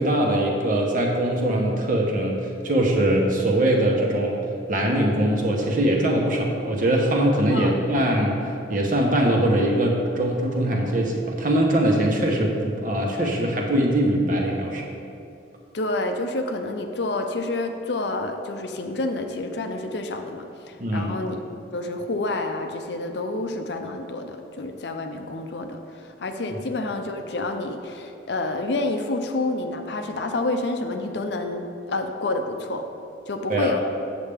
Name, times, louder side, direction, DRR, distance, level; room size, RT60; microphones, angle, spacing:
voice 1, 0.0-4.4 4.7-14.8 20.8-21.1 33.5-33.8, right 1 dB, 45° right, 0 dB, 1.0 m, -22 dB
voice 2, 7.5-8.0 15.7-21.4 21.7-32.9 33.3-33.8, left 2 dB, 60° left, 5 dB, 0.6 m, -29 dB
8.2 x 6.8 x 3.5 m, 2.6 s
head